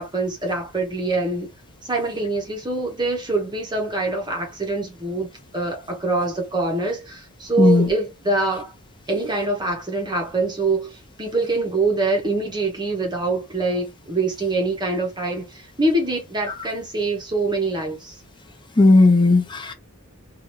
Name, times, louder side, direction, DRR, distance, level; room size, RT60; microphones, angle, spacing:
voice 1, 0.0-1.5 1.8-5.3 5.5-8.7 9.1-18.2, right 2 dB, 20° right, 0.9 m, -24 dB
voice 2, 7.6-7.9 18.8-19.7, left 2 dB, 20° left, 0.7 m, -15 dB
2.9 x 2.4 x 3.0 m
head